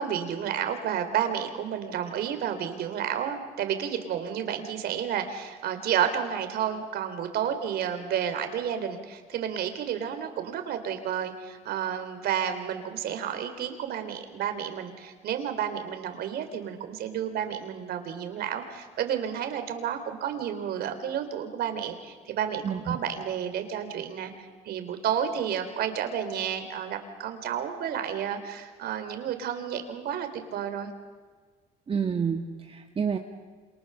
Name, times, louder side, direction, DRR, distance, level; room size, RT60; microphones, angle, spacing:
voice 1, 0.0-24.3 24.7-30.9, right 9 dB, 70° right, 8 dB, 3.5 m, -31 dB
voice 2, 22.6-23.0 31.9-33.2, right 6 dB, 35° right, 4 dB, 1.7 m, -29 dB
28.0 x 27.0 x 6.9 m, 1.5 s
cardioid pair, 110°, 17 cm